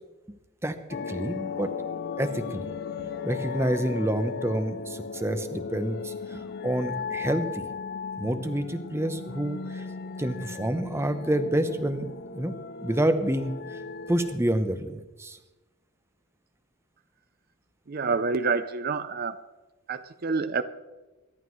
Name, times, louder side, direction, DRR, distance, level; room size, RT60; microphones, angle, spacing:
sound 1, 0.9-14.4, left 5 dB, 45° left, 0.4 m, -36 dB
voice 1, 1.1-1.7 2.2-2.7 3.0-7.6 8.2-9.8 10.2-12.5 12.8-13.5 14.1-15.4, right 1 dB, 10° right, 8 dB, 0.8 m, -28 dB
voice 2, 17.9-19.4 19.9-20.6, right 4 dB, 45° right, 10 dB, 0.5 m, -27 dB
24.0 x 11.5 x 3.2 m, 1.1 s
head